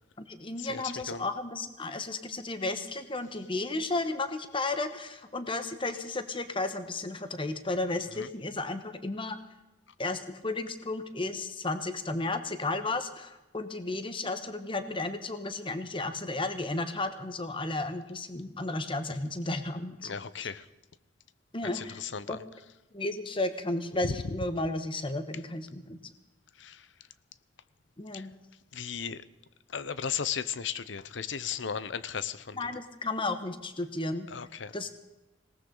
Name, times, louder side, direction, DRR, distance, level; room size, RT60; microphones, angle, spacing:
voice 1, 0.3-9.4 10.0-20.1 20.4-20.5 21.5-22.0 22.3-22.4 22.9-26.0 28.0-28.3 32.5-34.3 34.7-35.0, left 2 dB, 30° left, 9 dB, 1.2 m, -33 dB
voice 2, 20.0-20.6 21.7-22.4 26.6-26.9 28.1-28.3 28.7-29.2 29.7-32.6 34.3-34.7, left 7 dB, 80° left, 15 dB, 0.8 m, -35 dB
19.5 x 18.5 x 3.9 m, 1.0 s
head